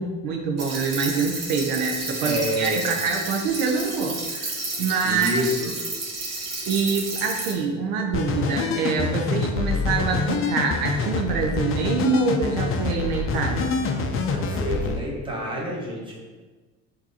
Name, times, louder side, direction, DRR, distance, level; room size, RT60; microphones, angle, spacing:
voice 1, 0.0-5.4 6.7-13.7, right 5 dB, 70° right, 2 dB, 0.6 m, -25 dB
sound 1, 0.6-7.5, right 2 dB, 40° right, 1.4 m, -31 dB
voice 2, 2.2-2.9 4.6-5.7 14.3-16.2, equal, 15° right, -3 dB, 1.4 m, -28 dB
sound 2, 8.1-15.0, left 4 dB, 35° left, 0.5 m, -26 dB
5.9 x 2.7 x 2.7 m, 1.3 s
hypercardioid pair, 80°, 37 cm